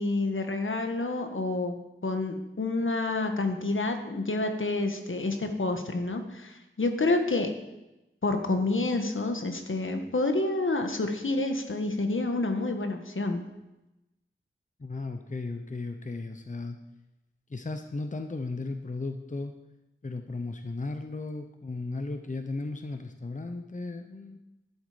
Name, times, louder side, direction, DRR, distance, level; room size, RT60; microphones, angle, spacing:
voice 1, 0.0-7.5 8.2-13.4, left 2 dB, 70° left, 6 dB, 1.6 m, -28 dB
voice 2, 14.8-16.8 17.5-19.5 20.0-24.4, left 3 dB, 35° left, 7 dB, 0.9 m, -35 dB
11.5 x 11.5 x 5.1 m, 0.96 s
wide cardioid pair, 70°, 21 cm